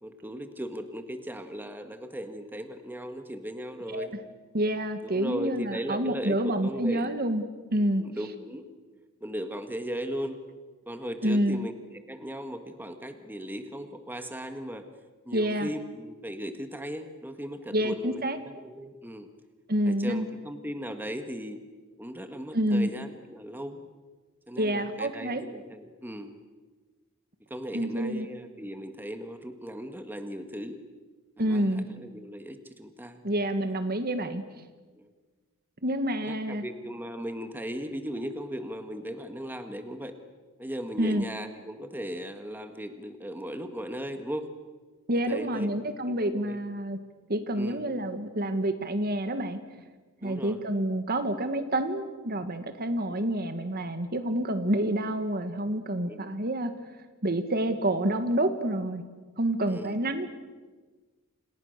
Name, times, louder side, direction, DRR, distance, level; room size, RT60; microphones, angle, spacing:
voice 1, 0.0-4.1 5.0-7.1 7.7-8.7 9.2-10.4 10.9-14.8 15.3-19.3 19.9-21.6 22.0-23.8 24.5-26.4 27.5-30.8 31.4-33.2 34.9-35.1 36.2-40.1 40.6-44.5 45.3-46.6 47.5-47.9 50.2-50.6 53.1-53.2 54.5-54.6 56.1-56.2 59.7-59.9, equal, 10° right, 7 dB, 1.8 m, -37 dB
voice 2, 4.5-7.4 7.7-8.0 11.2-11.6 15.3-15.7 17.7-18.4 19.7-20.3 22.5-22.9 24.6-25.4 27.7-28.3 31.4-31.9 33.2-34.4 35.8-36.6 41.0-41.3 45.1-47.0 47.3-49.6 50.2-56.7 57.2-59.0 59.4-60.3, right 1 dB, 45° right, 9 dB, 1.8 m, -28 dB
30.0 x 28.0 x 6.7 m, 1.4 s
head